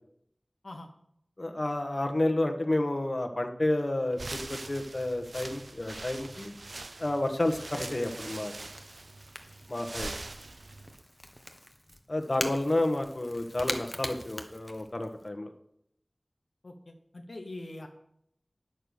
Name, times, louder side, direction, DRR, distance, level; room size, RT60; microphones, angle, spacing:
voice 1, 1.4-6.5 7.0-8.5 9.7-10.2 12.1-15.5, left 1 dB, 50° left, 4 dB, 1.3 m, -30 dB
sound 1, 4.1-11.0, right 2 dB, 75° right, 0.5 m, -43 dB
Crackle / Crack, 5.8-15.3, equal, 10° left, 1.2 m, -43 dB
voice 2, 16.6-17.9, left 2 dB, 80° left, 3 dB, 1.0 m, -43 dB
9.7 x 6.4 x 7.0 m, 0.72 s
wide cardioid pair, 45°, 0 cm